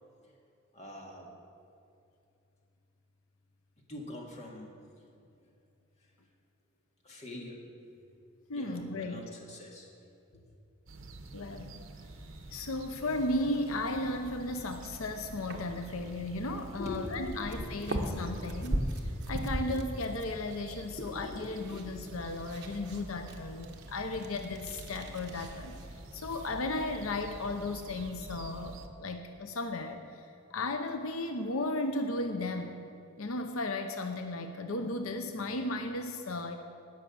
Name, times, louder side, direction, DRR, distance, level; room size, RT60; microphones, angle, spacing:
voice 1, 0.7-1.3 3.9-4.7 7.0-7.6 8.5-9.9 16.8-18.7 21.0-21.9, left 2 dB, 30° left, -1 dB, 2.1 m, -43 dB
voice 2, 8.5-9.3 11.3-11.8 12.5-25.8 26.1-32.8 33.2-36.6, left 2 dB, 85° left, 6 dB, 0.8 m, -35 dB
sound 1, 10.9-28.9, right 2 dB, 75° right, 0.9 m, -48 dB
sound 2, 12.8-28.1, right 1 dB, 55° right, 1.3 m, -41 dB
18.5 x 6.3 x 7.0 m, 2.5 s
head